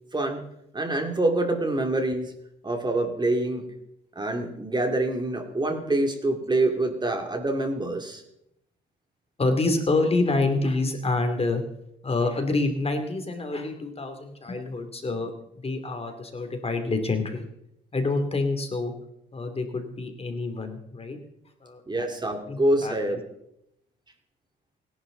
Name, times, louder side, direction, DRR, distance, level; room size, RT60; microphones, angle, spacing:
voice 1, 0.1-0.4 0.7-2.3 2.6-3.7 4.2-8.2 21.9-23.2, right 2 dB, 20° right, 5 dB, 2.6 m, -26 dB
voice 2, 9.4-11.6 12.0-15.3 15.6-17.4 17.9-18.9 19.3-21.2 21.6-22.1 22.5-22.9, left 3 dB, 30° left, 6 dB, 2.8 m, -27 dB
29.0 x 11.5 x 3.9 m, 0.81 s
cardioid pair, 90°, 20 cm